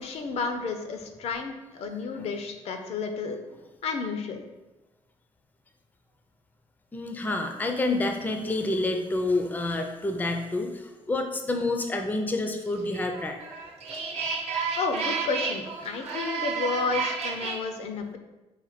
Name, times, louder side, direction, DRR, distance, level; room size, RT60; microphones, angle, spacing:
voice 1, 0.0-3.4 3.8-4.5 14.8-18.2, left 4 dB, 65° left, 6 dB, 0.5 m, -31 dB
voice 2, 6.9-13.4 14.0-14.3, left 2 dB, 15° left, 5 dB, 0.4 m, -28 dB
sound 1, 12.9-17.6, right 5 dB, 65° right, 0.8 m, -31 dB
4.3 x 2.2 x 4.1 m, 1.1 s
cardioid pair, 90°, 12 cm